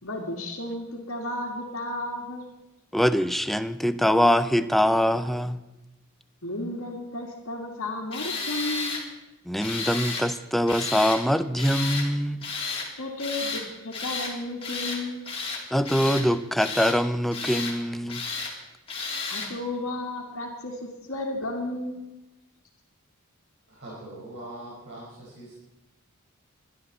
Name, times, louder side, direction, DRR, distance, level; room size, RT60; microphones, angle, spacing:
voice 1, 0.0-2.5 6.4-9.1 13.0-15.3 19.3-20.8 21.1-22.1, left 1 dB, 65° left, 0 dB, 2.2 m, -33 dB
voice 2, 2.9-5.6 9.5-12.4 15.7-18.2, equal, ahead, 12 dB, 0.5 m, -23 dB
Tools, 8.1-9.0 9.6-10.3 10.7-11.2 11.6-12.1 12.4-12.9 13.2-13.6 13.9-14.3 14.6-15.0 15.3-16.3 16.6-17.0 17.3-17.8 18.1-18.5 18.9-19.5, left 4 dB, 25° left, 3.2 m, -32 dB
voice 3, 23.7-25.5, right 1 dB, 55° right, -6 dB, 4.7 m, -42 dB
22.0 x 12.0 x 4.2 m, 1.0 s
head